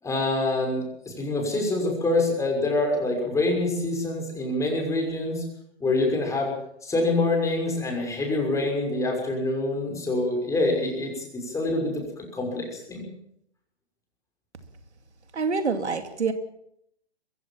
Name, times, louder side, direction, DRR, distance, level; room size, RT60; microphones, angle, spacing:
voice 1, 0.0-5.4 5.8-6.5 6.8-13.1, left 2 dB, 10° left, 6.1 m, -26 dB
voice 2, 15.3-16.3, right 4 dB, 90° right, 2.7 m, -26 dB
22.5 x 16.0 x 7.4 m
hypercardioid pair, 140°, 33 cm